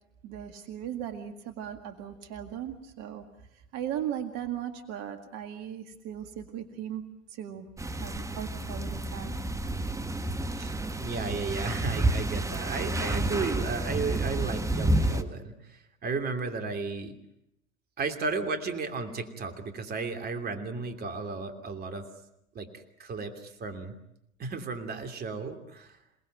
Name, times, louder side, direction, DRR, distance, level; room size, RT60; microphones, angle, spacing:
voice 1, 0.2-3.3 3.5-7.0 7.3-7.7 8.0-9.4, right 10 dB, 40° right, 7 dB, 2.1 m, -37 dB
sound 1, 7.8-15.2, right 1 dB, 10° right, 1.5 m, -30 dB
voice 2, 10.6-17.1 18.0-22.1 22.5-24.0 24.4-26.0, right 4 dB, 25° right, 6 dB, 3.0 m, -34 dB
28.5 x 19.5 x 9.1 m, 0.81 s
figure-of-eight pair, 95°, 40 cm